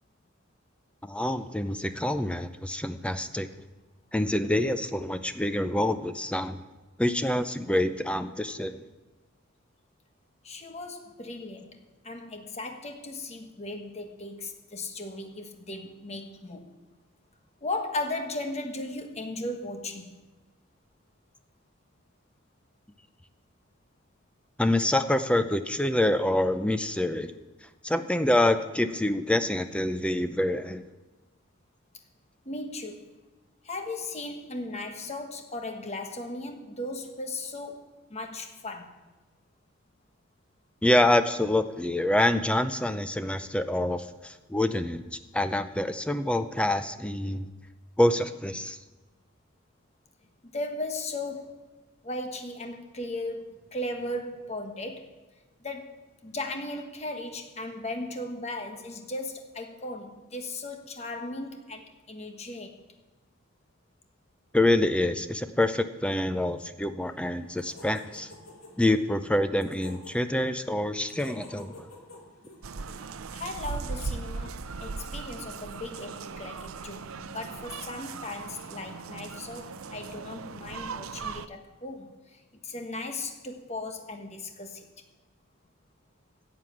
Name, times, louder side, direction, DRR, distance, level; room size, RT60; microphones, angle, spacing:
voice 1, 1.0-3.5 4.1-6.6 7.0-8.8 24.6-27.3 27.8-30.8 40.8-45.0 45.3-47.5 48.0-48.8 64.5-68.3 68.8-71.9, left 1 dB, 5° left, 10 dB, 0.5 m, -26 dB
voice 2, 10.4-16.8 17.6-20.1 32.4-33.1 33.6-39.0 50.4-51.7 52.0-55.2 55.6-62.8 73.0-84.9, left 2 dB, 30° left, 5 dB, 1.2 m, -37 dB
sound 1, 67.0-73.1, left 2 dB, 85° left, 2.6 m, -50 dB
sound 2, 72.6-81.5, right 4 dB, 90° right, 0.6 m, -38 dB
11.0 x 7.7 x 8.6 m, 1.2 s
head